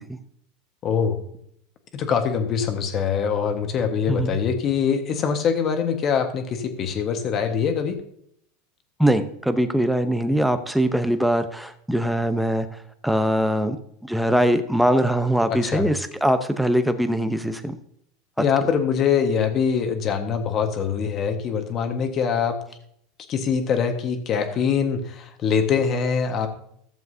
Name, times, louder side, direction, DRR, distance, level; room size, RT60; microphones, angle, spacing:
voice 1, 0.8-1.2 1.9-8.0 15.5-15.9 18.4-22.6 23.3-26.5, left 6 dB, 40° left, 6 dB, 1.4 m, -23 dB
voice 2, 9.0-12.7 13.0-13.8 14.0-17.7 18.4-18.5, right 1 dB, ahead, 9 dB, 0.8 m, -22 dB
14.5 x 7.3 x 2.7 m, 0.70 s
supercardioid pair, 120°, 0 cm